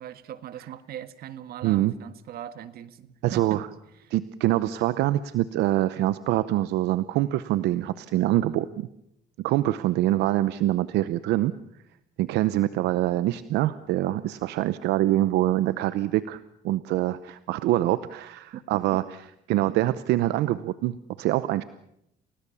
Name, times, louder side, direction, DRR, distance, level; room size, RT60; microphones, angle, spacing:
voice 1, 0.0-3.6 4.0-4.1 10.1-10.2 19.7-19.8, right 11 dB, 65° right, 12 dB, 1.6 m, -40 dB
voice 2, 1.6-1.9 3.2-3.7 4.1-8.9 9.4-11.5 12.2-16.4 16.6-19.0 19.5-21.6, right 14 dB, 85° right, 14 dB, 0.8 m, -25 dB
29.5 x 18.5 x 7.0 m, 0.78 s
cardioid pair, 110°, 17 cm